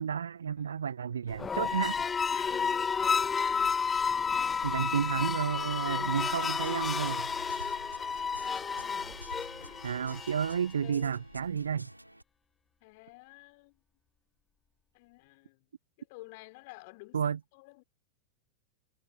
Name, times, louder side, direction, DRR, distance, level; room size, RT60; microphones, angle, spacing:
voice 1, 0.0-2.0 4.6-7.3 9.8-11.9 17.1-17.4, right 7 dB, 70° right, 1.5 m, -31 dB
sound 1, 1.3-10.7, left 6 dB, 20° left, 0.3 m, -31 dB
voice 2, 2.3-4.8 8.7-9.2 10.8-11.5 12.8-13.8 14.9-15.7 16.0-17.8, left 26 dB, 50° left, 4.9 m, -53 dB
sound 2, 6.3-12.2, equal, 90° right, 3.1 m, -49 dB
figure-of-eight pair, 90°, 0 cm